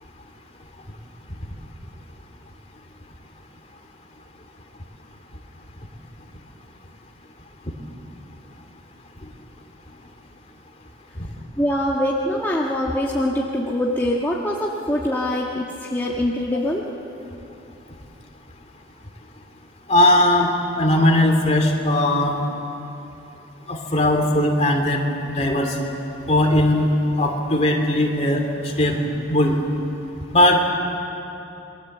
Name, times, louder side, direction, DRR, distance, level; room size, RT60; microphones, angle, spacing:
voice 1, 11.6-16.8, left 1 dB, 10° left, -4 dB, 1.5 m, -23 dB
voice 2, 19.9-20.5 20.8-22.3 23.7-25.8 26.3-26.8 27.2-29.0 29.3-29.6 30.3-30.7, left 1 dB, 30° left, 2 dB, 2.9 m, -18 dB
28.5 x 22.5 x 7.9 m, 3.0 s
head